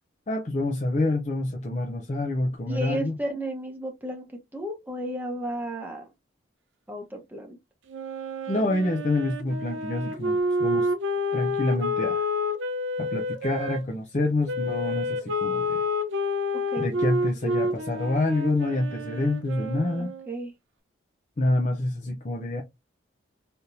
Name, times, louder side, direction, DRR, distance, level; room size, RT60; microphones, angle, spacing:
voice 1, 0.3-3.2 8.5-10.9 11.3-12.3 13.0-15.8 16.8-20.1 21.4-22.6, left 2 dB, 35° left, 0.5 m, -27 dB
voice 2, 2.7-4.3 4.5-6.1 6.9-7.6 16.7-16.9 17.4-17.8 20.0-20.5, right 1 dB, 10° right, 0.8 m, -33 dB
Wind instrument woodwind instrument, 7.9-13.8 14.5-20.3, left 1 dB, 75° right, 0.5 m, -29 dB
3.4 x 2.8 x 2.5 m
head